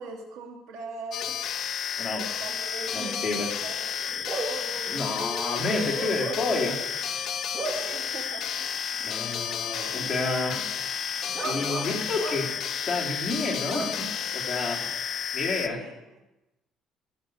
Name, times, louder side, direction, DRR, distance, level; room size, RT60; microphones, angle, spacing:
voice 1, 0.0-1.4 2.4-3.3 3.6-4.1 7.7-8.7 15.6-16.0, right 3 dB, 85° right, 1 dB, 2.8 m, -41 dB
sound 1, 1.1-15.7, left 8 dB, 55° left, 0.7 m, -32 dB
voice 2, 2.0-2.4 2.9-3.5 4.9-6.8 9.0-10.7 11.4-12.6 12.9-14.1 14.3-14.9 15.3-15.8, left 3 dB, 20° left, -4 dB, 3.6 m, -30 dB
Bark / Cricket, 2.0-15.3, right 2 dB, 25° right, 3.0 m, -38 dB
16.0 x 6.8 x 7.9 m, 0.99 s
cardioid pair, 125°, 0 cm